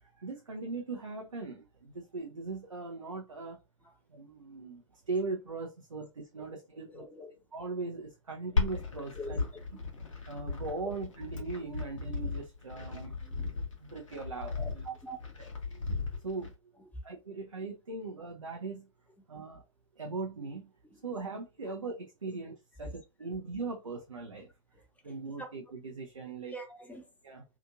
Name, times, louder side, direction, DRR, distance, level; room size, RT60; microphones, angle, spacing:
voice 1, 0.0-3.6 4.1-7.1 7.5-9.4 10.3-13.1 13.8-14.9 15.7-15.9 16.2-16.5 17.0-18.9 19.3-19.6 20.0-20.7 21.0-24.5 25.0-26.5 27.2-27.4, right 3 dB, 85° right, 0.5 m, -39 dB
voice 2, 6.8-7.3 8.4-8.5 9.1-9.8 12.9-13.5 14.5-14.7 15.0-15.2 16.8-17.0 20.8-21.0 21.7-21.8 22.3-22.4 22.8-22.9 23.3-23.4 24.7-24.8 26.5-27.1, equal, 10° left, 0.7 m, -45 dB
Glass, 8.6-16.5, left 4 dB, 75° left, 0.9 m, -36 dB
2.8 x 2.5 x 2.4 m
figure-of-eight pair, 90°, 16 cm